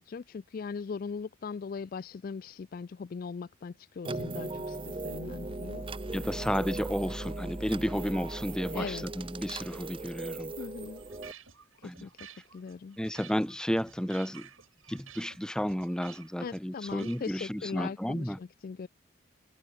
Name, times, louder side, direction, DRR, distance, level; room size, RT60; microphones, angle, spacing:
voice 1, 0.0-5.9 8.7-9.0 10.6-11.0 11.8-12.1 12.5-13.0 16.4-18.9, left 5 dB, 45° left, 0.3 m, -40 dB
sound 1, 4.0-11.3, right 2 dB, 25° right, 0.8 m, -38 dB
voice 2, 6.1-10.5 11.8-12.1 13.0-14.5 14.9-18.4, equal, 5° left, 0.9 m, -32 dB
sound 2, 10.8-17.3, right 8 dB, 80° right, 4.2 m, -53 dB
head